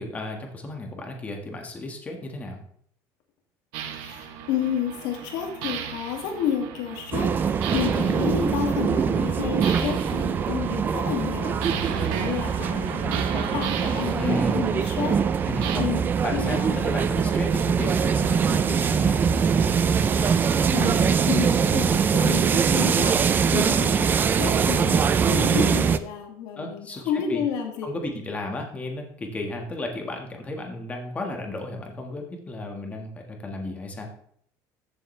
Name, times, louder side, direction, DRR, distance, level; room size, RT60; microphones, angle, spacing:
voice 1, 0.0-2.6 11.7-12.1 14.2-14.7 15.5-15.9 16.2-19.2 26.6-27.0 27.3-27.4 27.8-34.1, left 2 dB, 20° left, 2 dB, 1.7 m, -34 dB
sound 1, 3.7-15.8, right 9 dB, 80° right, 1.2 m, -35 dB
voice 2, 3.9-15.2 15.8-16.0 16.3-16.9 20.3-27.9, left 9 dB, 75° left, 2 dB, 2.3 m, -31 dB
sound 2, 7.1-26.0, right 6 dB, 25° right, 0.5 m, -23 dB
14.0 x 7.1 x 3.3 m, 0.66 s
cardioid pair, 160°, 8 cm